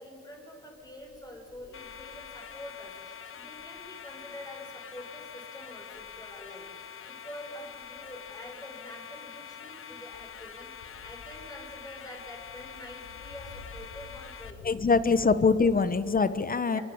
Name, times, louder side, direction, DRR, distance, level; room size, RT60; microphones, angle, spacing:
voice 1, 0.0-14.8 15.2-15.4 16.7-16.8, left 1 dB, 10° left, 1 dB, 7.1 m, -46 dB
sound 1, 0.7-3.0 3.4-4.2 5.3-5.4 5.9-6.5 7.7-8.5 10.1-16.2, left 2 dB, 80° left, 6.8 m, -51 dB
sound 2, 1.7-14.5, left 8 dB, 45° left, 1.5 m, -45 dB
voice 2, 14.6-16.8, left 4 dB, 30° left, 14 dB, 1.1 m, -24 dB
25.0 x 24.0 x 8.9 m, 2.5 s
cardioid pair, 90°, 30 cm